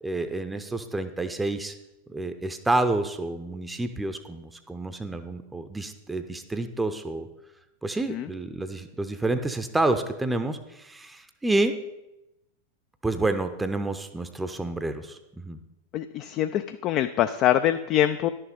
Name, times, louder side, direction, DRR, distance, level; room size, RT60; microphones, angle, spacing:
voice 1, 0.0-1.7 2.1-7.3 7.8-11.8 13.0-15.6, right 2 dB, 10° right, 9 dB, 0.7 m, -29 dB
voice 2, 15.9-18.3, left 11 dB, 35° left, 9 dB, 0.4 m, -24 dB
11.0 x 6.6 x 5.2 m, 0.93 s
figure-of-eight pair, 90°, 0 cm